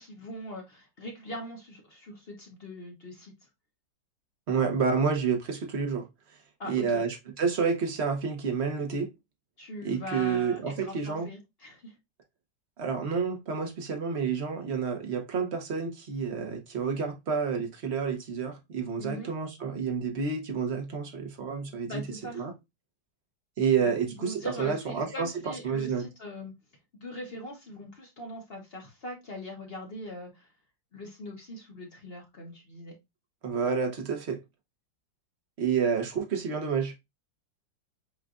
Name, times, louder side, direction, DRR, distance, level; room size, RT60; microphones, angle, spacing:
voice 1, 0.0-3.3 6.6-7.0 9.6-11.9 19.0-19.3 21.9-22.4 23.8-26.5 27.0-30.5 30.9-32.9, equal, 40° left, 1.0 m, -41 dB
voice 2, 4.5-6.1 6.6-9.1 9.8-11.3 12.8-22.0 22.3-22.5 23.6-26.0 33.4-34.4 35.6-37.0, right 6 dB, 45° right, 1.1 m, -29 dB
7.5 x 2.5 x 2.4 m
omnidirectional pair, 2.0 m